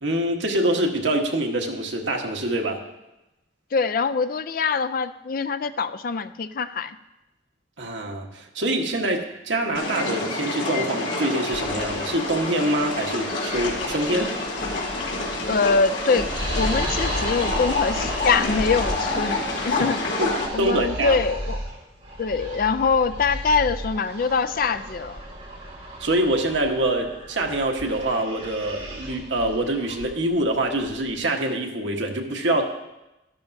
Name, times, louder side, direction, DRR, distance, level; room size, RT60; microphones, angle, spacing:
voice 1, 0.0-2.8 7.8-14.4 20.2-20.3 20.6-21.2 26.0-32.6, right 1 dB, 85° right, 2 dB, 1.3 m, -25 dB
voice 2, 3.7-7.0 15.5-16.3 16.5-20.1 20.5-21.6 22.2-25.2, left 5 dB, 50° left, 11 dB, 0.4 m, -23 dB
sound 1, 9.7-20.5, left 2 dB, 80° left, 2.5 m, -28 dB
sound 2, 11.5-31.2, equal, 35° right, 4.0 m, -35 dB
13.0 x 12.0 x 2.7 m, 0.97 s
head